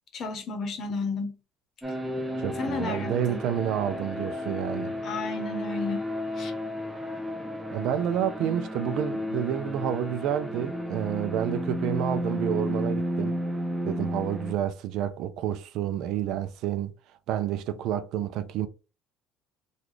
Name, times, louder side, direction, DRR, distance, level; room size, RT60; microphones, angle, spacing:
voice 1, 0.1-1.4 2.6-3.4 5.0-6.1 6.4-6.5, left 3 dB, 40° left, 0.9 m, -32 dB
sound 1, 1.8-14.5, equal, 5° right, 0.5 m, -32 dB
voice 2, 2.4-4.9 7.7-13.4 13.8-16.9 17.3-18.7, right 10 dB, 60° right, 0.4 m, -29 dB
3.8 x 2.3 x 3.1 m
cardioid pair, 145°, 0 cm